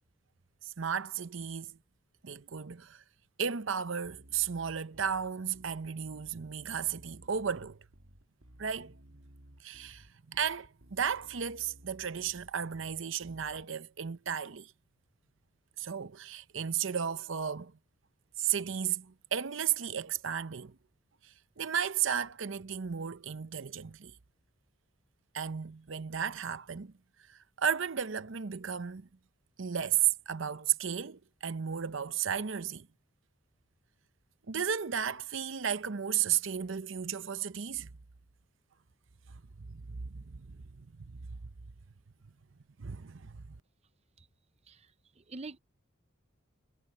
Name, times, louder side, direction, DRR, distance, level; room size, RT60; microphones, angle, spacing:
voice 1, 0.6-1.8 2.2-3.0 3.4-7.8 8.6-8.9 9.6-14.7 15.8-17.7 18.4-20.8 21.6-24.1 25.3-26.9 27.3-29.1 29.6-32.9 34.5-37.9 39.6-41.1 42.8-43.4, right 8 dB, 65° right, 0.7 m, -34 dB
Bass guitar, 4.0-13.6, right 1 dB, 85° right, 2.4 m, -57 dB
voice 2, 44.7-45.6, right 3 dB, 30° right, 0.6 m, -46 dB
head